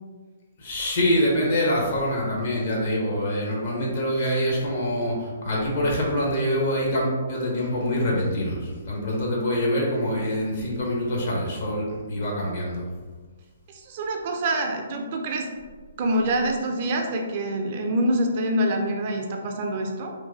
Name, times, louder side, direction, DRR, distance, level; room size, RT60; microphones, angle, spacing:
voice 1, 0.6-12.8, equal, 50° left, -3 dB, 0.8 m, -25 dB
voice 2, 13.7-15.5 16.0-20.1, right 1 dB, 45° right, 2 dB, 0.3 m, -26 dB
3.0 x 2.2 x 2.5 m, 1.4 s
figure-of-eight pair, 125°, 0 cm